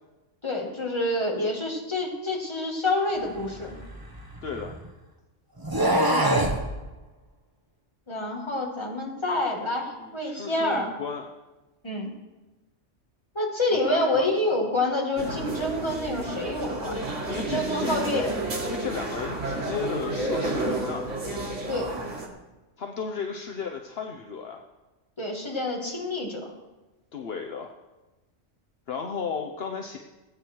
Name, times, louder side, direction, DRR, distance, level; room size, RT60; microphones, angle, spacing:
voice 1, 0.4-3.8 6.1-6.4 8.1-10.9 11.8-12.1 13.4-17.0 17.4-18.4 21.7-21.9 25.2-26.5, left 1 dB, 25° left, 0 dB, 2.2 m, -28 dB
sound 1, 3.4-4.8 5.6-6.6, right 1 dB, 20° right, 1.2 m, -25 dB
voice 2, 4.4-4.7 10.0-11.2 13.8-14.3 17.3-18.0 18.6-21.1 22.8-24.6 27.1-27.7 28.9-30.0, left 5 dB, 60° left, 3 dB, 1.1 m, -34 dB
sound 2, 15.2-22.3, right 2 dB, 90° right, 2.3 m, -31 dB
18.5 x 8.9 x 4.6 m, 1.1 s
omnidirectional pair, 1.2 m